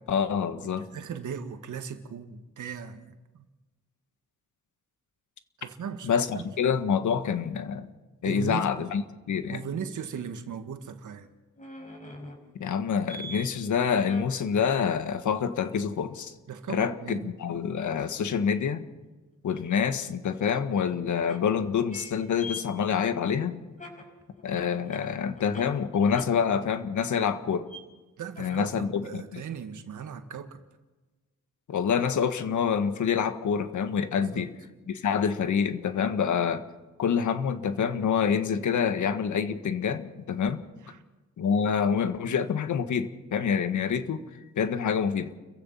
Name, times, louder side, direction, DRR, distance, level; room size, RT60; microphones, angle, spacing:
voice 1, 0.1-0.9 6.0-7.9 8.2-9.6 12.6-16.3 16.7-18.9 19.4-23.6 24.4-27.7 28.4-29.4 31.7-34.5 34.9-36.6 37.0-40.6 41.4-44.2 44.6-45.3, left 7 dB, 70° left, 9 dB, 1.7 m, -27 dB
voice 2, 0.6-3.5 5.6-6.1 6.3-6.4 8.2-8.9 9.5-11.3 16.5-17.3 28.2-30.6 34.2-34.5 35.0-35.1 40.9-41.0, right 7 dB, 75° right, 7 dB, 1.9 m, -38 dB
sound 1, 11.6-13.5 14.0-14.3 18.1-18.2 19.8-19.9 21.2-21.4 21.9-22.1 22.4-25.7 26.1-26.2 27.7-27.8 28.3-28.8 29.1-29.2, left 1 dB, 25° left, 5.6 m, -43 dB
30.0 x 15.5 x 5.7 m, 1.2 s
cardioid pair, 85°, 30 cm